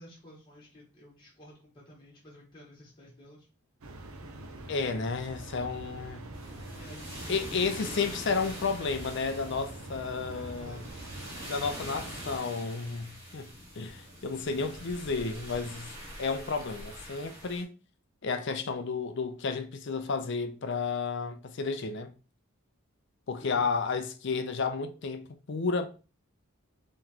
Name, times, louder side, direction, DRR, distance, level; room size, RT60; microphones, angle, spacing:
voice 1, 0.0-3.5 6.7-7.7 10.3-11.1 23.4-23.7, equal, 20° left, 1.2 m, -53 dB
sound 1, 3.8-12.4, right 1 dB, 75° right, 0.7 m, -44 dB
voice 2, 4.7-6.2 7.3-10.8 11.5-13.5 13.8-15.9 16.2-17.7 18.2-22.1 23.3-25.9, left 4 dB, 55° left, 0.4 m, -32 dB
sound 2, 6.3-17.6, equal, 15° right, 1.3 m, -44 dB
3.9 x 3.1 x 2.8 m
head